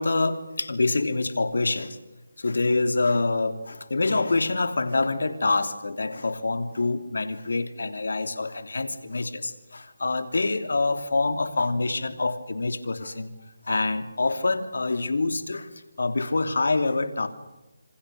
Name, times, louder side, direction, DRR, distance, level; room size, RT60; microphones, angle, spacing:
voice 1, 0.0-2.0 2.4-13.3 13.7-15.7 16.0-17.3, left 3 dB, 75° left, 9 dB, 3.1 m, -26 dB
27.0 x 27.0 x 6.7 m, 1.1 s
figure-of-eight pair, 165°, 0 cm